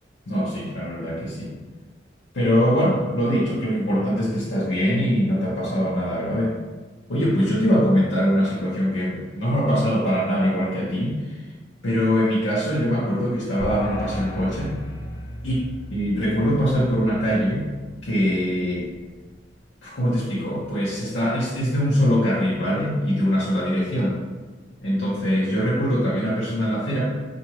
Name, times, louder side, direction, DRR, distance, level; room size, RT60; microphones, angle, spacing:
voice 1, 0.3-1.5 2.3-6.6 7.1-11.4 11.8-14.8 15.4-15.6 15.9-17.7 18.0-18.9 19.8-24.2 24.8-27.1, equal, 85° left, -7 dB, 0.8 m, -22 dB
sound 1, 13.6-19.1, equal, 50° left, 1.0 m, -35 dB
4.7 x 2.6 x 3.0 m, 1.3 s
head